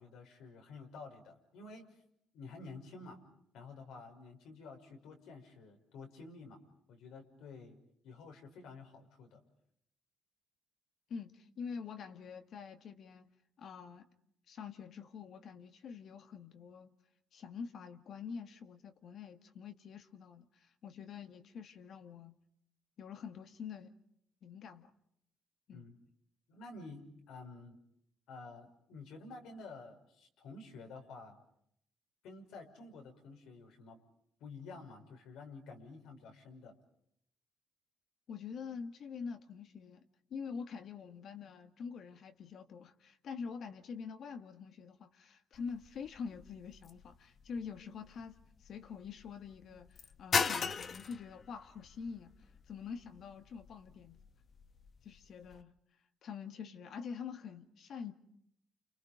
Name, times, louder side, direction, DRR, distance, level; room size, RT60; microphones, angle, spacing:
voice 1, 0.0-1.9 2.3-3.2 3.5-6.6 6.9-7.8 8.0-9.4 25.7-26.0 26.5-27.8 28.3-31.4 32.2-34.0 34.4-36.7, left 3 dB, 90° left, 5.9 m, -51 dB
voice 2, 11.1-13.3 13.6-14.1 14.5-16.9 17.3-22.3 23.0-23.9 24.4-24.9 25.7-25.9 38.3-40.0 40.3-52.3 52.7-54.2 55.0-55.7 56.2-58.1, left 6 dB, 65° left, 2.2 m, -46 dB
sound 1, 45.5-55.6, left 5 dB, 50° left, 1.3 m, -40 dB
30.0 x 29.5 x 5.2 m
cardioid pair, 90°, 0 cm